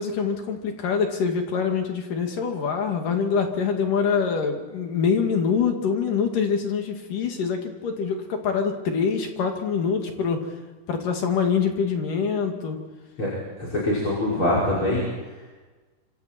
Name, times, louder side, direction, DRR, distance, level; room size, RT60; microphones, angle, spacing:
voice 1, 0.0-10.4 10.9-12.8, left 6 dB, 60° left, 3 dB, 3.7 m, -25 dB
voice 2, 13.6-15.0, left 1 dB, 30° left, -5 dB, 6.3 m, -23 dB
26.5 x 26.0 x 4.5 m, 1.3 s
omnidirectional pair, 4.5 m